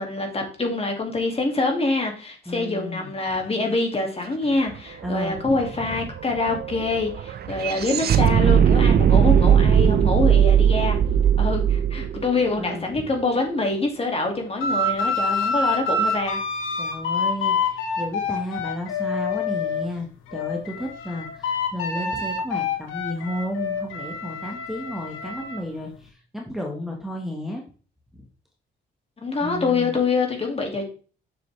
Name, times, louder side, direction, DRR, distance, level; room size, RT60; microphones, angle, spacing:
voice 1, 0.0-11.0 11.4-16.4 29.2-30.9, left 3 dB, 30° left, 2 dB, 2.3 m, -25 dB
voice 2, 2.5-3.1 5.0-5.6 6.0-6.1 12.6-13.1 16.8-27.6 28.1-28.3 29.4-30.0, left 1 dB, ahead, -1 dB, 1.4 m, -33 dB
sound 1, 4.7-4.8 5.0-13.3, right 8 dB, 55° right, 0.7 m, -19 dB
sound 2, 14.6-19.9 20.3-25.6, left 3 dB, 90° left, 1.5 m, -27 dB
7.0 x 6.5 x 3.3 m, 0.38 s
cardioid pair, 90°, 20 cm